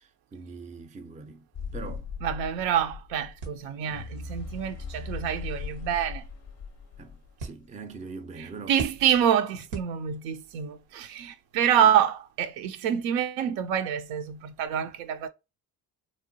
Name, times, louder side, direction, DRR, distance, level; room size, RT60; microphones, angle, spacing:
voice 1, 0.0-1.5 1.7-2.1 7.0-7.1 7.4-8.8, right 4 dB, 15° right, 0.4 m, -42 dB
sound 1, 1.5-7.6, left 5 dB, 35° left, 0.5 m, -39 dB
voice 2, 2.2-6.2 8.7-15.3, right 9 dB, 70° right, 0.5 m, -26 dB
sound 2, 3.4-10.5, right 3 dB, 90° right, 0.9 m, -45 dB
2.9 x 2.1 x 2.6 m
hypercardioid pair, 55°, 49 cm